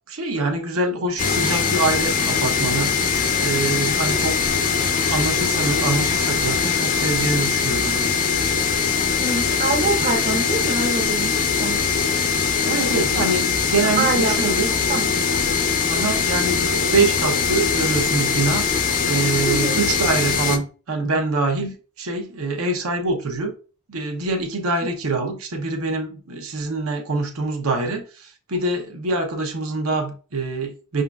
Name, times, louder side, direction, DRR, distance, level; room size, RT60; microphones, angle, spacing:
voice 1, 0.1-2.9 3.4-4.4 5.1-8.2 12.6-14.7 15.8-23.5 23.9-31.0, right 3 dB, 75° right, 0.9 m, -25 dB
sound 1, 1.2-20.6, left 6 dB, 35° left, 0.4 m, -21 dB
voice 2, 9.2-11.8 14.0-14.6 14.9-15.1 19.4-19.8, right 3 dB, 35° right, 0.7 m, -25 dB
5.3 x 3.7 x 2.3 m
head